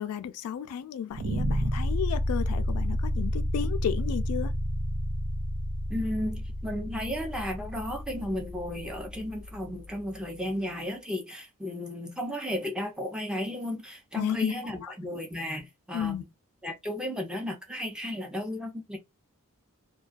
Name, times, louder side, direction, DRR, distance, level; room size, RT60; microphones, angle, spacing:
voice 1, 0.0-4.5 14.1-14.5 14.8-14.9 15.9-16.2, left 9 dB, 80° left, 0.3 m, -33 dB
sound 1, 1.1-10.1, equal, 55° right, 0.5 m, -31 dB
voice 2, 5.9-16.2 16.6-19.0, left 1 dB, 5° right, 0.5 m, -34 dB
2.3 x 2.2 x 2.4 m
head